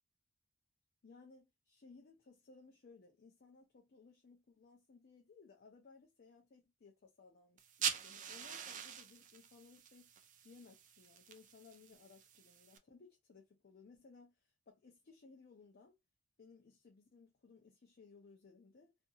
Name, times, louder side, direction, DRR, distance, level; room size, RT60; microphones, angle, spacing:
voice 1, 1.0-16.0 16.4-19.0, left 4 dB, 50° left, 0.5 m, -61 dB
sound 1, 7.6-12.8, right 8 dB, 40° right, 0.3 m, -44 dB
2.6 x 2.5 x 2.3 m
head